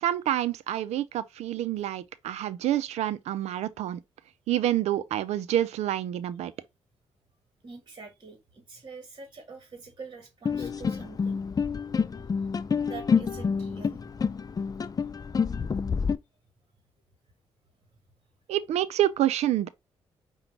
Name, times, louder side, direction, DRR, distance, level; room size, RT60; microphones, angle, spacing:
voice 1, 0.0-4.0 4.5-6.5 18.5-19.7, right 12 dB, 75° right, 0.5 m, -27 dB
voice 2, 7.6-11.4 12.8-14.1, right 4 dB, 40° right, 1.3 m, -45 dB
sound 1, 10.5-16.2, left 6 dB, 35° left, 0.4 m, -28 dB
5.0 x 2.2 x 4.5 m
supercardioid pair, 50°, 11 cm